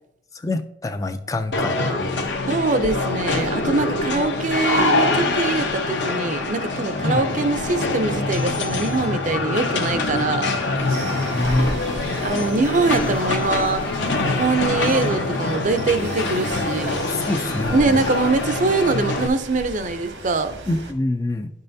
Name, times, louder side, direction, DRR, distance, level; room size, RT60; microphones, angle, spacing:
voice 1, 0.3-2.3 7.0-7.3 11.3-11.7 17.1-18.0 20.7-21.5, left 2 dB, 20° left, 0.4 m, -25 dB
sound 1, 1.5-19.3, left 2 dB, 75° left, 1.0 m, -24 dB
voice 2, 2.5-10.6 12.2-13.8 14.3-17.0 17.7-20.6, right 3 dB, 45° right, 0.5 m, -23 dB
sound 2, 6.3-20.9, right 1 dB, 90° right, 1.4 m, -37 dB
11.0 x 5.5 x 2.7 m
head